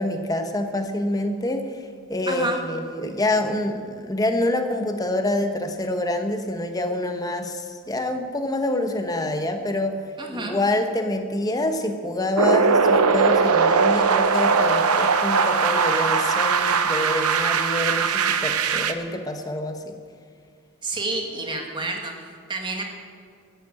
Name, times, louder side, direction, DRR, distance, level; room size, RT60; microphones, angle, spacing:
voice 1, 0.0-10.0 10.3-20.0, left 1 dB, 15° left, 6 dB, 1.0 m, -26 dB
voice 2, 2.3-2.6 10.2-10.6 20.8-22.8, right 2 dB, 20° right, 2 dB, 1.8 m, -29 dB
sound 1, 12.4-18.9, right 5 dB, 85° right, 0.9 m, -20 dB
13.5 x 10.5 x 8.6 m, 2.1 s
head